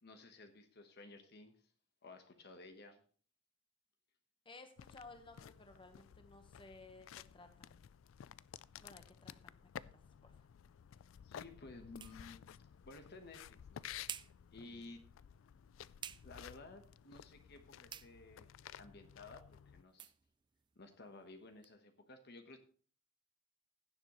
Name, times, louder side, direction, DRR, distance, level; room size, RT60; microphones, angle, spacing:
voice 1, 0.0-1.6 2.0-3.0 11.2-12.5 12.8-13.9 14.5-15.0 16.2-20.1 20.8-22.6, left 3 dB, 55° left, 7 dB, 1.1 m, -55 dB
voice 2, 4.4-7.9 8.8-9.9 10.2-10.3 14.6-14.9, left 3 dB, 25° left, 6 dB, 1.2 m, -58 dB
sound 1, 4.8-19.8, left 9 dB, 85° left, 0.3 m, -54 dB
sound 2, 10.3-21.8, right 9 dB, 25° right, 0.3 m, -56 dB
16.5 x 7.2 x 3.1 m, 0.43 s
head